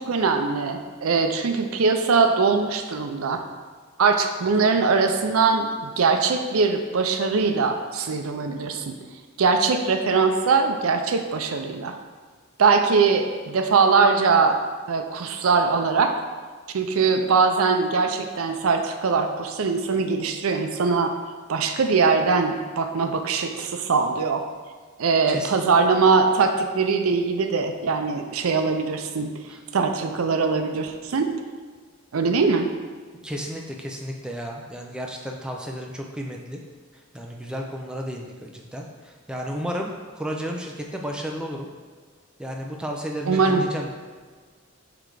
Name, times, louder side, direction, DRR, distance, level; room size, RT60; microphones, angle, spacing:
voice 1, 0.0-3.4 4.0-8.9 9.4-12.0 12.6-14.6 14.9-16.1 16.7-21.1 21.5-24.5 25.0-29.3 29.7-31.3 32.1-32.7 43.3-43.7, right 4 dB, 85° right, 6 dB, 0.5 m, -21 dB
voice 2, 33.2-36.6 37.1-41.7 42.4-44.0, equal, 5° right, 0 dB, 0.5 m, -33 dB
5.9 x 3.4 x 4.7 m, 1.5 s
head